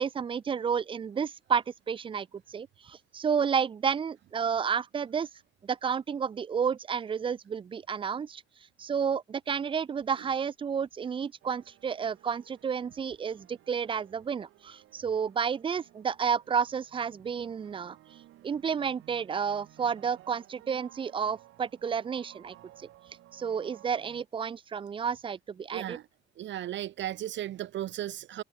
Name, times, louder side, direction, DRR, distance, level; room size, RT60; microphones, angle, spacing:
voice 1, 0.0-5.3 5.6-8.4 8.8-18.0 18.4-22.9 23.3-26.0, right 7 dB, 25° right, 0.3 m, -31 dB
sound 1, 11.4-24.2, right 15 dB, 85° right, 3.5 m, -57 dB
voice 2, 25.7-26.0 26.4-28.4, right 12 dB, 70° right, 0.8 m, -35 dB
cardioid pair, 90°, 20 cm